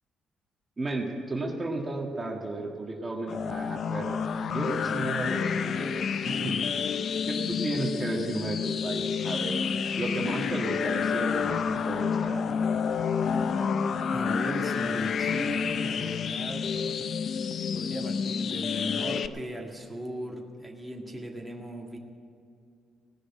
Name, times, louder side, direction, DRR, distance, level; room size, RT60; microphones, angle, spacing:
voice 1, 0.8-4.2 4.5-6.0 6.2-6.7 7.2-9.6 10.0-12.6, right 2 dB, 25° right, 0 dB, 1.7 m, -33 dB
sound 1, 3.3-19.3, left 6 dB, 55° left, 0.5 m, -29 dB
voice 2, 14.1-16.8 17.7-22.0, right 1 dB, 5° right, -1 dB, 1.8 m, -37 dB
17.5 x 6.4 x 9.6 m, 2.4 s
cardioid pair, 90°, 0 cm